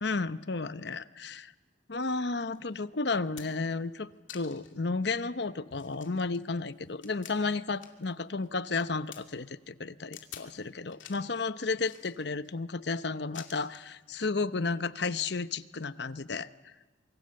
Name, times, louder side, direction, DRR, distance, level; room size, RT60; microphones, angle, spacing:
voice 1, 0.0-1.5 1.9-16.7, left 3 dB, 60° left, 13 dB, 0.9 m, -33 dB
sound 1, 2.5-2.6 3.1-3.7 4.3-4.8 5.2-5.3 5.7-8.1 8.4-9.2 10.1-10.5 10.9-11.3 11.8-12.5 13.3-13.9 15.0-15.1, left 10 dB, 80° left, 2.5 m, -49 dB
27.0 x 24.0 x 7.7 m, 1.3 s
head